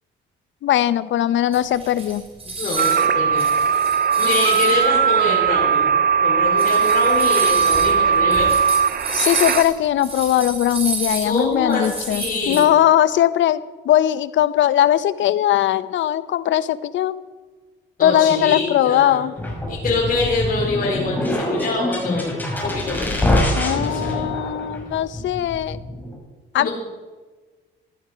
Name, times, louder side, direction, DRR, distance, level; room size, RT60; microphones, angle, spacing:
voice 1, 0.6-2.2 9.1-17.1 18.0-19.3 23.5-25.8 26.5-26.7, left 11 dB, 70° left, 15 dB, 0.8 m, -19 dB
sound 1, 1.5-3.1 3.4-4.8 5.5-5.6 6.4-12.6, right 2 dB, 30° right, 5.2 m, -29 dB
voice 2, 2.6-3.5 4.2-5.9 6.2-8.6 11.2-12.7 18.0-19.2 19.7-22.4 22.6-23.2 23.8-24.3 26.6-26.7, left 3 dB, 45° left, -4 dB, 4.3 m, -25 dB
sound 2, 2.8-9.6, right 7 dB, 50° right, 0.8 m, -18 dB
sound 3, 19.4-26.1, left 1 dB, 10° left, 5.9 m, -24 dB
15.5 x 12.0 x 5.0 m, 1.3 s
cardioid pair, 90°, 20 cm